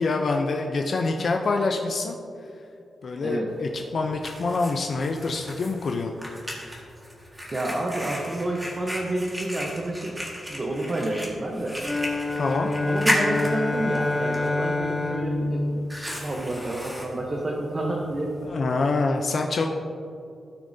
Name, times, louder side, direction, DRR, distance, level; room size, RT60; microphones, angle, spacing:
voice 1, 0.0-2.2 3.0-6.1 12.4-12.7 18.4-19.7, left 3 dB, 45° left, 2 dB, 0.6 m, -26 dB
Fire, 3.5-18.5, equal, 10° right, 1.7 m, -35 dB
voice 2, 7.4-10.2 10.5-11.8 12.9-15.8 16.2-18.9, right 1 dB, 25° right, -1 dB, 0.9 m, -29 dB
sound 1, 11.8-16.5, left 2 dB, 5° left, 0.7 m, -27 dB
16.0 x 6.5 x 2.7 m, 2.5 s
wide cardioid pair, 150°, 0 cm